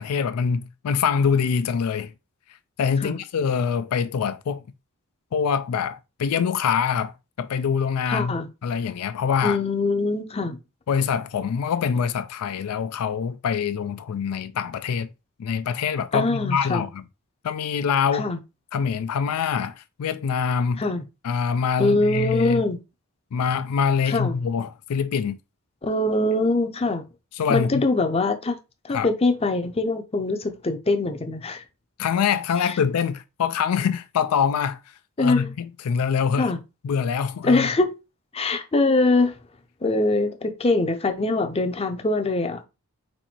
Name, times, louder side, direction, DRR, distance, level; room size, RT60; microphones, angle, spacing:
voice 1, 0.0-2.1 2.8-4.6 5.3-8.4 8.6-9.6 10.9-15.1 15.4-17.0 17.4-18.3 18.7-20.8 21.2-22.6 23.3-25.4 27.3-27.9 28.9-29.1 32.0-34.8 35.2-36.5 36.8-37.7, left 6 dB, 80° left, 0.4 m, -24 dB
voice 2, 8.1-8.5 9.4-10.6 16.1-16.8 18.1-18.4 20.8-21.0 21.8-22.8 24.1-24.4 25.8-27.0 27.5-28.6 28.8-31.6 32.7-32.8 35.2-35.5 36.4-36.6 37.4-37.9 38.3-39.3 39.8-42.7, left 2 dB, 25° left, 0.6 m, -23 dB
4.3 x 2.6 x 4.4 m
head